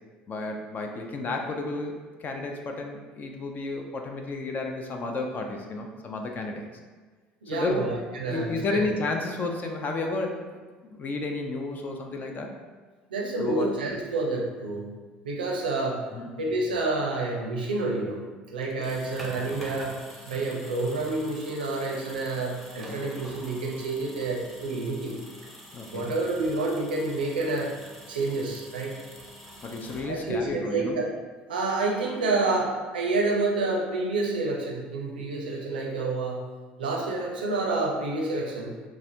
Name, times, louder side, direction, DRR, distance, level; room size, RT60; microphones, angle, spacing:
voice 1, 0.3-6.7 7.5-7.9 8.3-10.4 10.8-12.5 13.4-13.7 16.1-16.3 25.7-26.1 29.6-31.0, left 3 dB, 35° left, 3 dB, 0.4 m, -32 dB
voice 2, 7.4-8.9 13.1-14.9 15.2-16.1 16.4-18.2 18.5-20.0 20.3-25.2 25.9-27.8 28.1-28.9 30.0-31.1 31.5-36.5 36.8-38.8, right 2 dB, 80° right, -1 dB, 0.5 m, -28 dB
sound 1, 18.6-30.5, equal, ahead, 0.8 m, -46 dB
4.1 x 2.4 x 2.6 m, 1.4 s
figure-of-eight pair, 60°, 5 cm